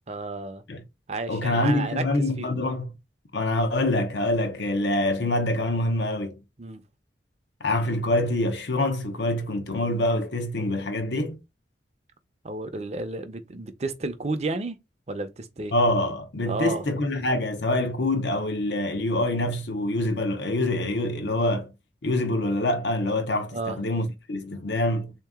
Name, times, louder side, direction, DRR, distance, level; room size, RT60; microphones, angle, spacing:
voice 1, 0.1-0.6 1.1-2.6 6.6-6.8 12.4-14.8 15.1-15.7 16.5-16.8 23.5-23.8, right 2 dB, 35° right, 0.5 m, -32 dB
voice 2, 1.3-2.9 3.3-6.4 7.6-11.4 15.7-21.7 22.0-25.1, left 1 dB, 75° left, 0.8 m, -25 dB
3.7 x 2.8 x 3.5 m
head